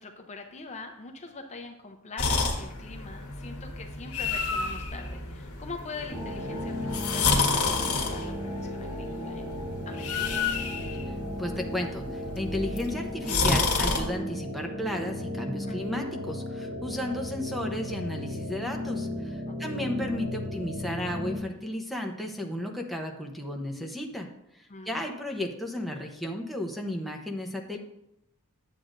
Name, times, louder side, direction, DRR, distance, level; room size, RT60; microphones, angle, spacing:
voice 1, 0.0-9.6 9.9-10.6 15.6-16.1 19.5-19.8 24.7-25.0, left 3 dB, 30° left, 4 dB, 0.6 m, -43 dB
sound 1, 2.2-14.0, left 4 dB, 75° left, 1.4 m, -30 dB
sound 2, 6.1-21.4, left 1 dB, 25° right, 1.0 m, -35 dB
voice 2, 11.4-24.3 24.8-27.8, left 1 dB, ahead, 1 dB, 0.8 m, -34 dB
9.9 x 7.6 x 2.6 m, 0.85 s
head